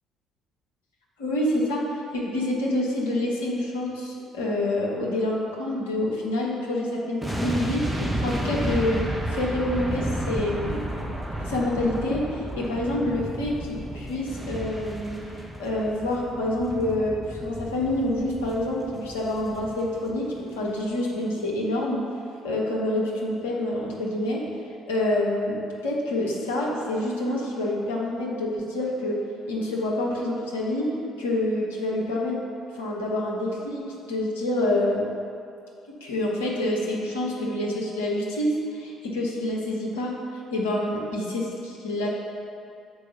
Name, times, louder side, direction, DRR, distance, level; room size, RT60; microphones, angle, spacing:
voice 1, 1.2-1.8 2.1-10.9 11.4-15.2 15.6-22.0 22.4-24.4 24.9-29.2 29.5-32.4 32.7-35.0 36.0-40.2 40.5-42.1, left 1 dB, 75° left, -4 dB, 1.2 m, -27 dB
sound 1, 7.2-20.4 20.6-20.8, right 1 dB, 5° right, 1.0 m, -32 dB
6.8 x 4.9 x 5.7 m, 2.6 s
figure-of-eight pair, 50°, 0 cm